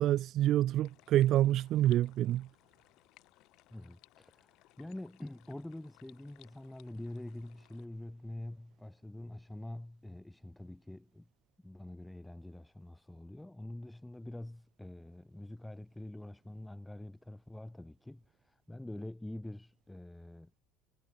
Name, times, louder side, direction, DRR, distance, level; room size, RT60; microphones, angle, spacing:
voice 1, 0.0-2.5, right 13 dB, 45° right, 0.5 m, -27 dB
sound 1, 0.8-7.9, left 18 dB, 55° left, 5.4 m, -64 dB
voice 2, 3.7-11.3 11.6-20.5, left 1 dB, 5° left, 1.7 m, -46 dB
cardioid pair, 160°, 0 cm